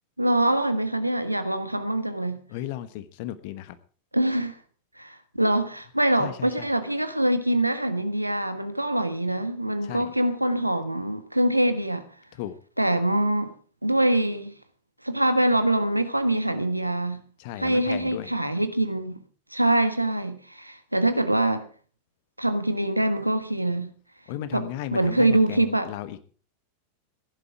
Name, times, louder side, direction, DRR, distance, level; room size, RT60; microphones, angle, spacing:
voice 1, 0.2-2.4 4.1-4.5 5.0-12.0 12.8-13.5 13.8-14.5 15.0-17.2 17.6-19.2 19.5-21.6 22.4-23.9 24.5-25.9, right 1 dB, 85° right, 1.3 m, -24 dB
voice 2, 2.5-3.8 6.2-6.7 9.8-10.1 12.3-12.6 17.4-18.3 24.3-26.2, left 12 dB, 50° left, 1.3 m, -35 dB
16.0 x 11.5 x 4.7 m
figure-of-eight pair, 90°, 0 cm